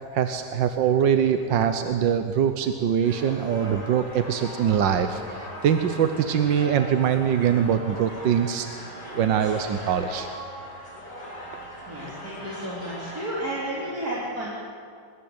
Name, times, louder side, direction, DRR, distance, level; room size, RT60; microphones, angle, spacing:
voice 1, 0.1-10.3, right 8 dB, 85° right, 8 dB, 1.7 m, -23 dB
sound 1, 3.0-13.3, equal, 20° left, 7.7 m, -40 dB
voice 2, 11.9-14.5, right 1 dB, 55° right, -6 dB, 4.1 m, -32 dB
24.5 x 20.5 x 8.8 m, 2.2 s
omnidirectional pair, 1.9 m